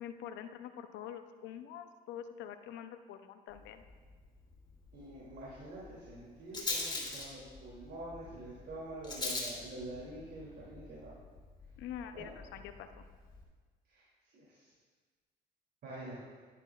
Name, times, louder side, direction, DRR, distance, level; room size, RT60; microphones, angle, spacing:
voice 1, 0.0-3.8 11.8-13.0, left 9 dB, 75° left, 8 dB, 0.7 m, -45 dB
Rattle, 3.5-13.4, left 2 dB, 25° left, 3.0 m, -44 dB
voice 2, 4.9-11.1 12.1-12.6 13.9-14.0 14.3-14.4 15.8-16.2, right 1 dB, 60° right, -6 dB, 2.9 m, -46 dB
11.0 x 10.5 x 2.5 m, 1.5 s
supercardioid pair, 80°, 19 cm